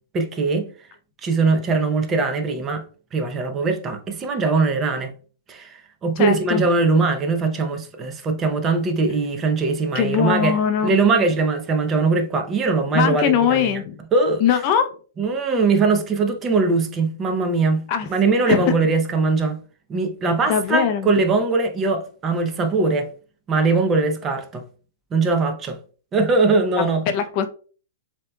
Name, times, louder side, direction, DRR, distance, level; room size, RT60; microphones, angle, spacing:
voice 1, 0.1-0.7 1.2-2.8 3.1-5.1 5.5-10.6 10.8-13.7 14.1-14.4 15.2-19.6 19.9-23.1 23.5-24.6 25.1-25.8 26.1-27.0, right 3 dB, 20° right, 0.6 m, -21 dB
voice 2, 6.2-6.6 9.9-11.2 12.9-14.0 14.4-14.9 17.9-18.1 18.5-18.8 20.5-21.1 26.8-27.5, left 8 dB, 35° left, 0.5 m, -21 dB
7.3 x 2.8 x 2.2 m
hypercardioid pair, 150°, 0 cm